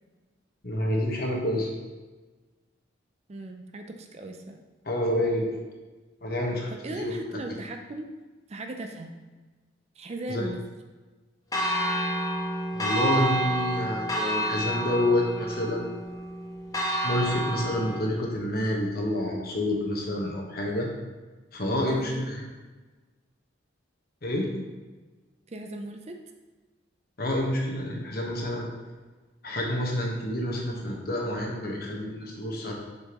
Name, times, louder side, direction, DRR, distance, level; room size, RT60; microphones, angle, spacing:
voice 1, 0.6-1.7 4.8-5.6 6.2-7.1 10.3-10.4 12.7-15.9 17.0-20.9 21.5-22.4 24.2-24.5 27.2-28.7 29.4-32.7, left 1 dB, 55° left, -1 dB, 1.2 m, -28 dB
voice 2, 3.3-4.7 6.7-8.1 8.5-9.1 10.0-10.6 21.7-22.2 25.5-26.2, right 2 dB, 35° right, 4 dB, 0.5 m, -38 dB
Church bell, 11.5-18.0, right 1 dB, 20° left, 0.8 m, -29 dB
6.6 x 5.6 x 3.0 m, 1.3 s
head